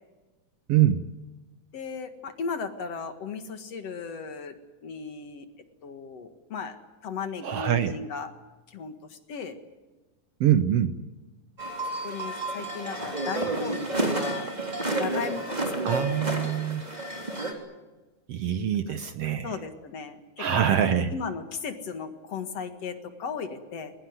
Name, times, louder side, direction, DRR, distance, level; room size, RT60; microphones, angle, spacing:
voice 1, 0.7-1.0 7.4-8.0 10.4-11.0 15.8-16.8 18.3-19.5 20.4-21.1, right 10 dB, 65° right, 10 dB, 1.7 m, -24 dB
voice 2, 1.7-4.6 4.8-5.5 5.8-6.8 7.0-8.3 8.7-9.6 12.0-14.5 15.0-16.1 16.4-16.5 18.9-19.0 19.4-23.9, left 5 dB, 60° left, 8 dB, 2.7 m, -36 dB
sound 1, 11.6-17.5, right 2 dB, 15° right, 3.3 m, -30 dB
22.0 x 20.0 x 9.5 m, 1.2 s
omnidirectional pair, 3.5 m